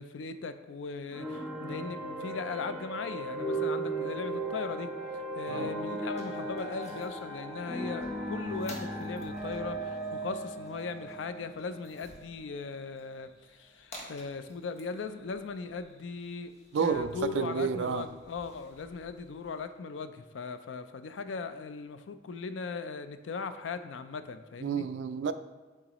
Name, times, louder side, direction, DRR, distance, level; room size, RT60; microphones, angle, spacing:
voice 1, 0.0-24.9, left 4 dB, 85° left, 10 dB, 0.4 m, -39 dB
sound 1, 1.1-12.4, right 1 dB, 5° right, 0.9 m, -36 dB
sound 2, 5.4-19.6, left 1 dB, 40° left, 1.0 m, -54 dB
voice 2, 16.7-18.1 24.6-25.3, right 6 dB, 75° right, 11 dB, 0.3 m, -30 dB
8.9 x 3.7 x 3.0 m, 1.3 s
head